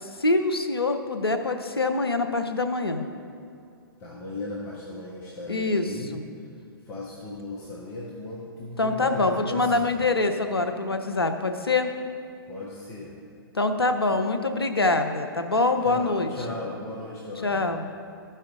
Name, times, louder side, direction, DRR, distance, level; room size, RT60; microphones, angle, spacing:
voice 1, 0.0-3.1 5.5-6.2 8.8-11.9 13.5-16.3 17.4-17.8, left 3 dB, 85° left, 7 dB, 0.7 m, -25 dB
voice 2, 4.0-6.2 6.8-10.0 12.5-13.1 15.8-17.7, left 2 dB, 25° left, -5 dB, 1.2 m, -36 dB
13.5 x 5.5 x 3.7 m, 2.4 s
figure-of-eight pair, 110°, 12 cm